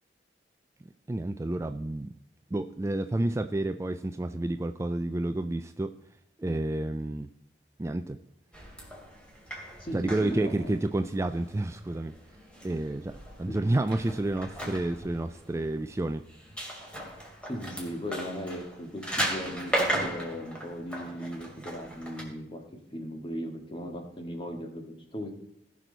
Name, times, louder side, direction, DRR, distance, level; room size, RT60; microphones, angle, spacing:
voice 1, 0.8-2.1 2.5-5.9 6.4-7.3 7.8-8.2 9.9-12.1 12.6-16.2, right 2 dB, 15° right, 9 dB, 0.3 m, -30 dB
sound 1, 8.5-22.2, right 1 dB, 5° left, 2.7 m, -37 dB
voice 2, 9.8-10.8 13.5-13.8 17.4-22.6 22.9-25.3, equal, 30° left, 3 dB, 1.8 m, -37 dB
18.5 x 6.2 x 4.0 m, 0.82 s
head